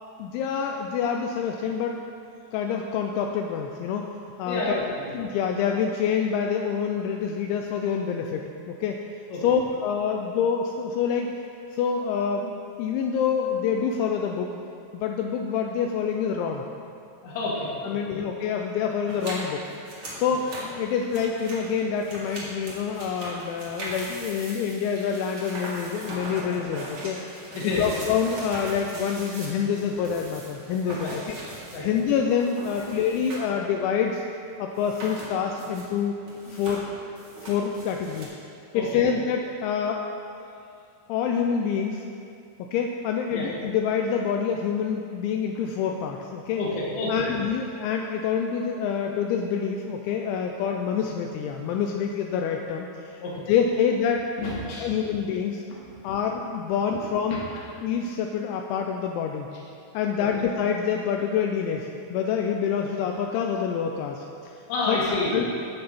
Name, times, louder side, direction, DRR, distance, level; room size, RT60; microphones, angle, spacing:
voice 1, 0.2-2.0 2.5-4.1 4.4-4.8 5.1-9.0 9.4-11.3 11.7-14.5 14.9-16.7 17.8-27.2 27.6-34.2 34.6-36.1 36.5-36.8 37.4-38.4 38.7-40.0 41.1-42.0 42.6-46.6 47.1-53.2 53.5-54.3 54.8-55.6 56.0-57.4 57.8-59.5 59.9-64.6 64.9-65.5, left 7 dB, 85° left, 2 dB, 2.7 m, -27 dB
voice 2, 4.5-5.1 9.3-9.4 17.2-18.0 27.5-27.8 31.0-31.1 31.7-31.9 38.7-38.8 43.3-43.5 46.6-47.1 53.2-53.3 54.4-54.9 60.2-60.3 64.7-65.4, left 3 dB, 70° left, -5 dB, 3.9 m, -29 dB
sound 1, 19.1-33.6 33.9-34.0 34.7-36.0 36.2-38.3, right 1 dB, 80° right, 1.1 m, -40 dB
16.0 x 5.8 x 4.1 m, 2.5 s
omnidirectional pair, 5.7 m